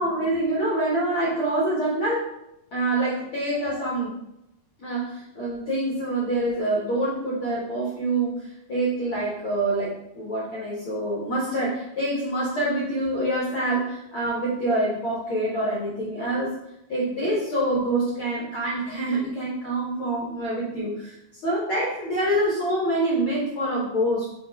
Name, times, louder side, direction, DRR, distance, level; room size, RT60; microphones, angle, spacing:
voice 1, 0.0-2.2 2.7-4.1 4.8-16.5 16.9-24.3, right 1 dB, 65° left, -6 dB, 1.3 m, -26 dB
4.8 x 4.5 x 4.3 m, 0.85 s
omnidirectional pair, 4.0 m